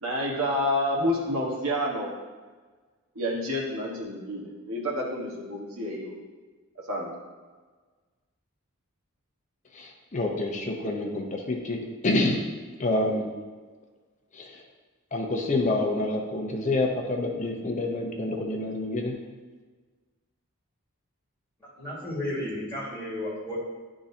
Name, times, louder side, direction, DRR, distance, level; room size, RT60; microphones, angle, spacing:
voice 1, 0.0-2.1 3.1-6.1 6.9-7.1, left 1 dB, 70° right, -2 dB, 1.4 m, -29 dB
voice 2, 9.7-12.4 12.8-13.3 14.3-14.6 15.1-19.1, left 2 dB, 35° left, 1 dB, 0.8 m, -28 dB
voice 3, 21.6-23.6, left 1 dB, 10° left, -7 dB, 1.8 m, -33 dB
10.0 x 3.8 x 2.8 m, 1.4 s
head